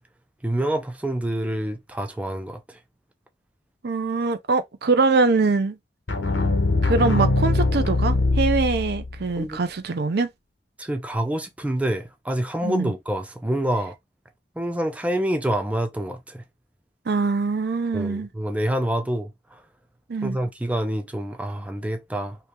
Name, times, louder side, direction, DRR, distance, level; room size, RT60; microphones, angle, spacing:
voice 1, 0.4-2.8 9.4-9.6 10.8-13.9 14.6-16.4 17.9-19.6 20.2-22.5, right 1 dB, 10° right, 0.4 m, -27 dB
voice 2, 3.8-5.8 6.8-10.3 12.6-12.9 17.1-18.3 20.1-20.4, right 3 dB, 60° right, 0.5 m, -23 dB
sound 1, 6.1-9.2, left 2 dB, 80° left, 1.1 m, -22 dB
2.9 x 2.7 x 3.3 m
head